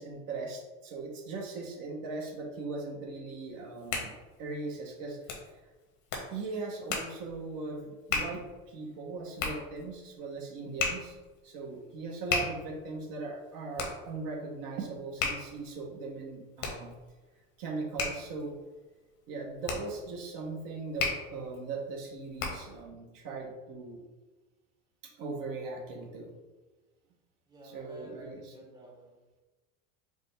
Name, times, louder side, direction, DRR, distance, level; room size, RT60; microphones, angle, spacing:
voice 1, 0.0-4.1 4.4-5.2 6.3-11.1 11.4-16.9 17.6-18.5 19.3-24.0 25.0-26.3 27.6-28.5, right 3 dB, 60° right, 0 dB, 1.0 m, -39 dB
Hands, 3.5-22.8, left 4 dB, 80° left, 1.1 m, -38 dB
voice 2, 27.5-29.2, right 1 dB, 10° right, -2 dB, 0.8 m, -50 dB
5.0 x 2.1 x 3.3 m, 1.2 s
supercardioid pair, 110°, 38 cm